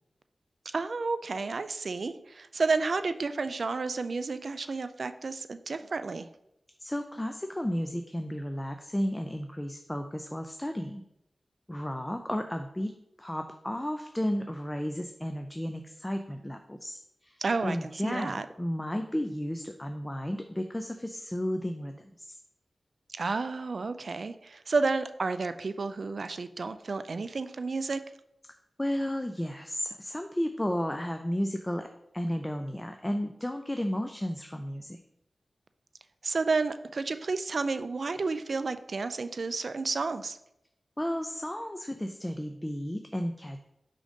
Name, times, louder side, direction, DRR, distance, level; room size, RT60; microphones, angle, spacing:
voice 1, 0.7-6.3 17.4-17.8 18.0-18.5 23.1-28.0 36.2-40.4, right 4 dB, 70° right, 11 dB, 0.3 m, -31 dB
voice 2, 6.8-11.0 11.7-22.4 28.8-31.9 32.1-35.0 41.0-43.6, equal, 15° left, 6 dB, 0.4 m, -33 dB
5.1 x 3.7 x 5.1 m, 0.82 s
cardioid pair, 50°, 0 cm